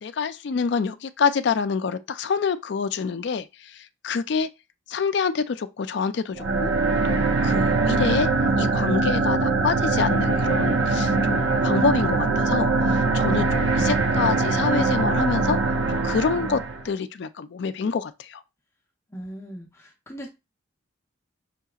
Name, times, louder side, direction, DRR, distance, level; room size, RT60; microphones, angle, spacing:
voice 1, 0.0-4.5 4.9-6.7 7.0-8.3 8.6-15.6 15.9-16.6 16.8-18.4, left 5 dB, 55° left, 0.4 m, -27 dB
sound 1, 6.3-16.8, right 3 dB, 75° right, 0.7 m, -22 dB
voice 2, 19.1-20.3, equal, 15° left, 0.7 m, -39 dB
5.7 x 2.8 x 2.3 m
head